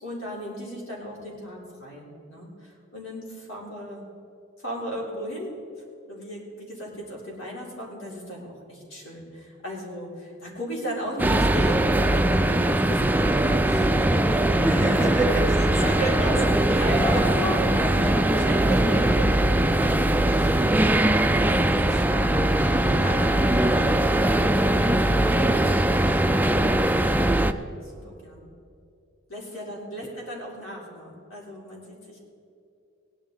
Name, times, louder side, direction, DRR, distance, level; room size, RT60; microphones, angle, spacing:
voice 1, 0.0-4.1 4.6-5.5 6.1-14.7 15.6-26.2 27.8-28.5 29.3-32.2, equal, 85° left, -3 dB, 3.5 m, -36 dB
sound 1, 11.2-27.5, right 1 dB, 10° right, 0.4 m, -21 dB
voice 2, 14.6-16.9 17.1-17.3 17.6-17.7, right 1 dB, 15° left, -3 dB, 2.5 m, -28 dB
17.5 x 10.5 x 3.8 m, 2.6 s
head